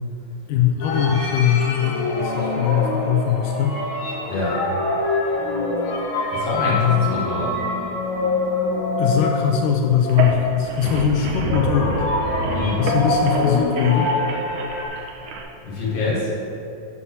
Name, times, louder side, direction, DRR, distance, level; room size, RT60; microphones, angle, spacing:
voice 1, 0.5-3.8 6.6-7.1 9.0-12.0 12.8-14.1, left 8 dB, 90° left, 1 dB, 2.2 m, -21 dB
sound 1, 0.8-10.8 11.5-14.9, left 2 dB, 70° left, 2.4 m, -25 dB
voice 2, 4.3-4.6 6.3-7.6 10.9-11.1 12.5-12.9 15.6-16.3, left 3 dB, 50° left, -7 dB, 2.5 m, -25 dB
sound 2, 10.0-15.4, right 2 dB, 75° right, 2.1 m, -28 dB
7.4 x 4.2 x 6.0 m, 2.8 s
omnidirectional pair, 3.7 m